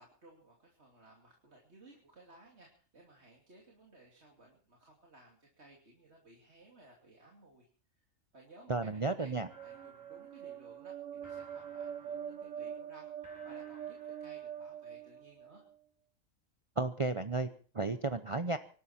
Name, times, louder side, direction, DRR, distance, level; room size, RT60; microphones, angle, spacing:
voice 1, 0.0-7.7 8.3-15.6, right 2 dB, 55° right, -1 dB, 3.0 m, -59 dB
voice 2, 8.7-9.5 16.8-17.5 17.7-18.6, right 3 dB, 30° right, 9 dB, 0.7 m, -33 dB
sound 1, 8.9-15.8, right 9 dB, 70° right, 1.3 m, -44 dB
sound 2, 9.5-14.7, right 1 dB, 15° right, 5.5 m, -60 dB
25.0 x 12.0 x 4.4 m, 0.40 s
omnidirectional pair, 1.4 m